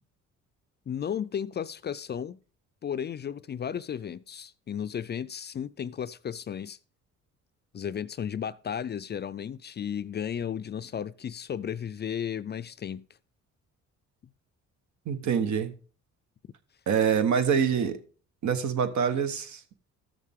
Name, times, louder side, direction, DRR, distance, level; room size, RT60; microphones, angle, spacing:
voice 1, 0.9-2.4 2.8-6.8 7.7-13.1, left 8 dB, 35° left, 0.4 m, -34 dB
voice 2, 15.1-15.7 16.9-18.0 18.4-19.6, right 7 dB, 70° right, 1.3 m, -25 dB
13.5 x 6.5 x 3.6 m
cardioid pair, 90°, 30 cm